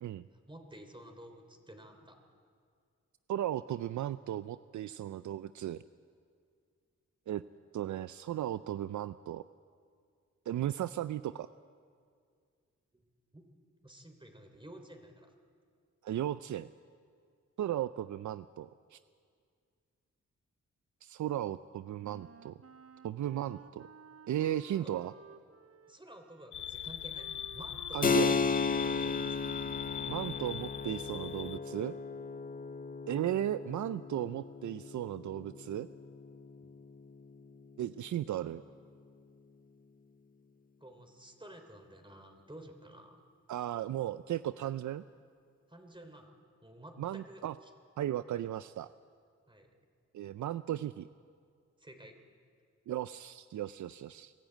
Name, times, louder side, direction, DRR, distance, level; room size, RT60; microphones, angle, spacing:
voice 1, 0.3-2.2 12.9-13.0 13.3-13.4 13.8-15.3 24.7-25.0 25.9-29.4 36.6-36.7 40.8-43.2 45.7-46.3 46.6-47.7 49.5-49.7 51.8-52.1, right 1 dB, 15° right, 5 dB, 3.1 m, -52 dB
voice 2, 3.3-5.8 7.3-7.4 7.7-9.4 10.5-11.5 16.0-16.7 17.6-19.0 21.0-22.6 23.0-23.9 24.3-25.1 27.9-28.4 30.1-31.9 33.1-35.9 37.8-38.6 43.5-45.0 47.0-47.6 48.0-48.9 50.1-51.1 52.9-54.3, right 12 dB, 80° right, 14 dB, 0.5 m, -36 dB
Wind instrument woodwind instrument, 22.0-30.9, right 5 dB, 55° right, 1.0 m, -55 dB
sound 1, 26.5-31.6, left 10 dB, 80° left, 0.6 m, -41 dB
Keyboard (musical), 28.0-38.2, left 5 dB, 30° left, 0.6 m, -35 dB
22.5 x 13.0 x 9.1 m, 2.2 s
cardioid pair, 55°, 30 cm